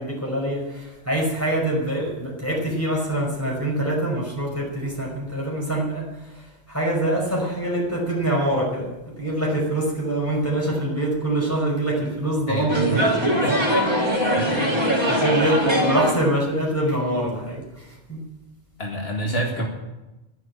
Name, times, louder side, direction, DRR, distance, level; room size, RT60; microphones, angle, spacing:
voice 1, 0.0-8.9 9.2-13.3 15.1-18.2, right 1 dB, 15° left, -2 dB, 5.5 m, -25 dB
voice 2, 12.5-13.6 14.4-14.8 18.8-19.7, right 1 dB, 70° left, 0 dB, 2.2 m, -28 dB
sound 1, 12.7-16.1, equal, 25° right, 3.1 m, -21 dB
11.5 x 11.0 x 8.8 m, 1.0 s
omnidirectional pair, 1.1 m